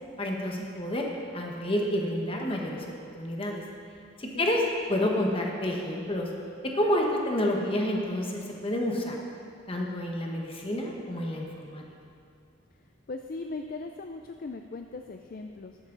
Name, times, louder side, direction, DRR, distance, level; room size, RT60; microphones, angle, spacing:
voice 1, 0.2-1.0 1.3-3.6 4.2-4.6 4.9-6.3 6.7-9.2 9.7-11.8, left 1 dB, 25° left, 0 dB, 1.3 m, -29 dB
voice 2, 13.1-15.8, left 3 dB, 45° left, 5 dB, 0.4 m, -39 dB
12.0 x 11.5 x 3.9 m, 2.4 s
head